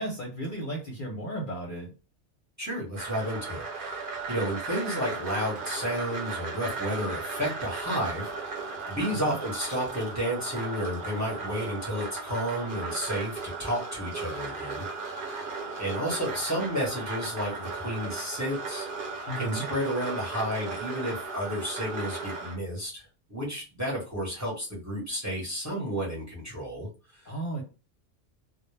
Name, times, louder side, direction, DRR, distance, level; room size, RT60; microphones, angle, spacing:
voice 1, 0.0-1.9 9.2-9.4 19.3-19.7 27.3-27.6, right 1 dB, 50° left, -1 dB, 0.7 m, -34 dB
voice 2, 2.6-4.0 4.3-14.9 15.1-15.2 15.8-18.9 19.4-27.2, equal, 15° right, -3 dB, 0.9 m, -32 dB
sound 1, 3.0-22.5, right 4 dB, 50° right, 0.8 m, -36 dB
2.1 x 2.1 x 3.1 m, 0.32 s
omnidirectional pair, 1.2 m